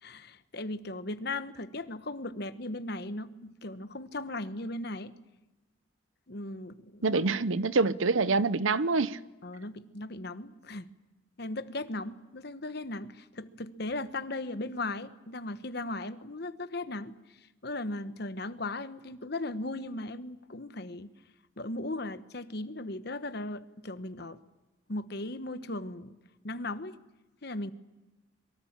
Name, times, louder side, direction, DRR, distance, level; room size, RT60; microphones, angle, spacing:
voice 1, 0.0-5.1 6.3-7.3 9.4-10.9 11.4-17.4 17.6-21.1 21.6-24.4 24.9-26.2 26.4-27.0 27.4-27.7, left 2 dB, 50° left, 1.1 m, -37 dB
voice 2, 7.0-9.2, right 3 dB, 75° right, 0.8 m, -26 dB
25.5 x 23.5 x 7.4 m
head